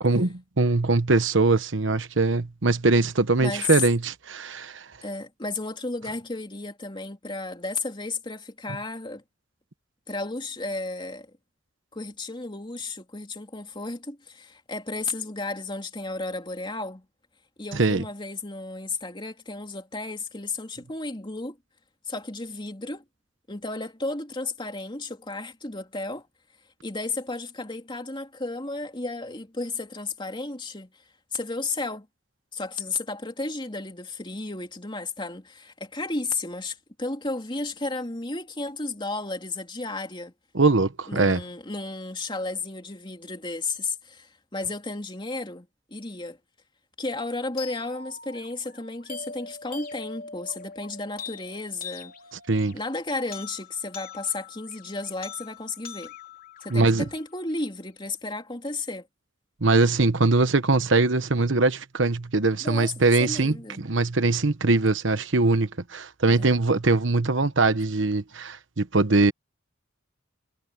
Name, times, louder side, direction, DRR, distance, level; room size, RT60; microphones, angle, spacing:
voice 1, 0.0-4.8 17.8-18.0 40.5-41.4 52.5-52.7 56.7-57.0 59.6-69.3, right 3 dB, 65° right, 1.1 m, -22 dB
voice 2, 3.4-3.8 5.0-9.2 10.1-11.3 11.9-17.0 17.6-21.6 22.0-23.0 23.5-26.3 26.8-30.9 31.3-32.1 32.5-40.3 41.1-46.4 47.0-52.1 52.7-56.1 56.6-59.1 62.6-63.8 66.3-66.5, left 3 dB, 25° left, 3.2 m, -33 dB
sound 1, 47.6-57.6, left 5 dB, 50° left, 4.5 m, -43 dB
head